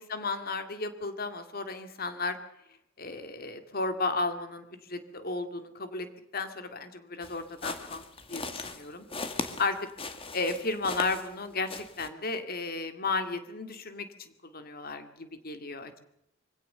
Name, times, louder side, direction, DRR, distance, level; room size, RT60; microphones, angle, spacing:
voice 1, 0.0-2.4 3.0-6.1 6.3-8.0 8.3-9.0 9.3-9.7 10.3-15.9, left 3 dB, 45° left, 9 dB, 2.2 m, -34 dB
sound 1, 7.2-11.4 11.7-12.1, left 3 dB, 30° left, 1.8 m, -38 dB
24.0 x 17.0 x 6.8 m, 0.82 s
head